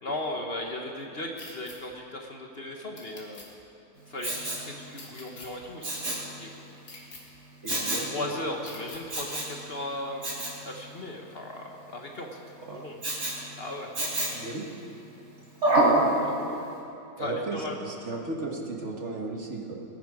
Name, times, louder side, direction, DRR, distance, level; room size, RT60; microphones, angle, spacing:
voice 1, 0.0-3.5 4.1-6.5 8.1-12.4 12.7-13.0 13.6-13.9 15.9-16.6 17.2-17.8, left 1 dB, 40° left, 1 dB, 1.2 m, -37 dB
sound 1, 1.4-1.8 3.0-3.5 4.9-5.5 6.8-7.2 8.6-9.0, left 3 dB, 90° left, 2.8 m, -45 dB
Respiratory sounds, 4.2-4.7 5.8-6.3 7.7-8.1 9.1-9.6 10.2-10.6 13.0-13.4 14.0-14.5 15.6-16.0 16.5-16.6, right 2 dB, 75° right, 4.3 m, -26 dB
voice 2, 7.6-8.4 12.7-12.8 14.3-14.6 17.2-19.7, right 2 dB, 50° right, 0 dB, 1.8 m, -35 dB
21.0 x 10.5 x 4.9 m, 2.8 s
omnidirectional pair, 1.6 m